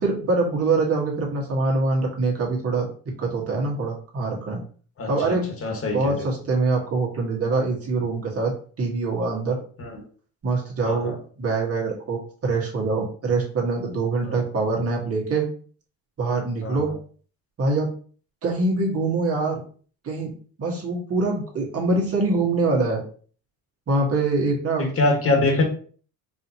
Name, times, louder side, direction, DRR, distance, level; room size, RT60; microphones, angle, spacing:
voice 1, 0.0-2.9 3.2-4.6 5.1-5.5 5.9-9.6 10.4-15.5 16.2-16.9 17.6-17.9 18.4-19.6 20.0-20.3 20.6-23.0 23.9-24.9, right 3 dB, 40° right, -1 dB, 1.6 m, -24 dB
voice 2, 5.0-5.4 5.6-6.2 9.8-10.0 10.8-11.1 14.2-14.4 16.6-16.8 24.8-25.6, left 2 dB, 40° left, 1 dB, 1.5 m, -24 dB
4.8 x 2.8 x 2.8 m, 0.43 s
cardioid pair, 100°, 36 cm